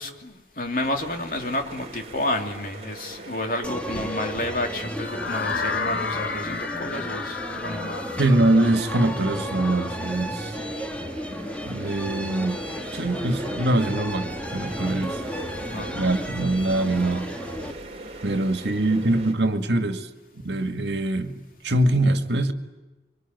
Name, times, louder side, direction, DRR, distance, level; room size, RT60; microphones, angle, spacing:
voice 1, 0.0-8.1 15.7-16.0 18.3-18.4, left 1 dB, 50° left, 2.9 m, -30 dB
sound 1, 0.8-19.3, right 2 dB, 35° right, 3.0 m, -41 dB
sound 2, 3.6-17.7, equal, 10° left, 1.5 m, -33 dB
sound 3, 5.0-10.9, left 5 dB, 75° left, 1.3 m, -33 dB
voice 2, 8.2-10.6 11.6-12.6 12.9-15.2 15.9-17.2 18.2-20.1 20.4-22.5, right 1 dB, 80° right, 2.0 m, -23 dB
25.5 x 24.5 x 9.5 m
head